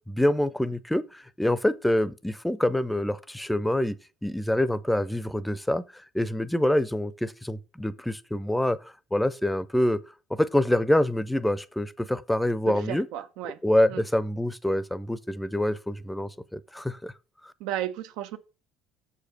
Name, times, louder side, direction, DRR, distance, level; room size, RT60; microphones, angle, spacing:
voice 1, 0.1-5.8 6.1-10.0 10.3-13.1 13.6-17.1, left 1 dB, 5° left, 0.6 m, -26 dB
voice 2, 12.7-13.6 13.9-14.0 17.6-18.4, right 12 dB, 80° right, 0.8 m, -34 dB
6.6 x 5.0 x 6.5 m
supercardioid pair, 90°, 0 cm